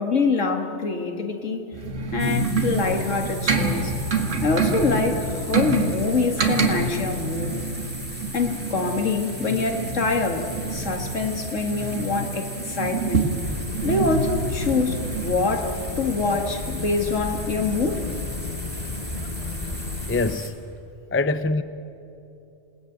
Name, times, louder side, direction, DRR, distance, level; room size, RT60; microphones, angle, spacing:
voice 1, 0.0-1.7 2.1-3.9 4.4-7.6 8.3-10.4 10.7-13.3 13.8-18.0 19.1-19.2, left 3 dB, 75° left, 2.3 m, -25 dB
sound 1, 1.7-15.3, right 3 dB, 70° right, 2.2 m, -27 dB
sound 2, 2.2-20.5, equal, 10° right, 2.5 m, -39 dB
sound 3, 13.4-20.4, left 3 dB, 35° left, 1.2 m, -33 dB
voice 2, 20.1-20.5 21.1-21.6, left 3 dB, 15° left, 0.4 m, -23 dB
27.5 x 19.0 x 9.2 m
omnidirectional pair, 1.3 m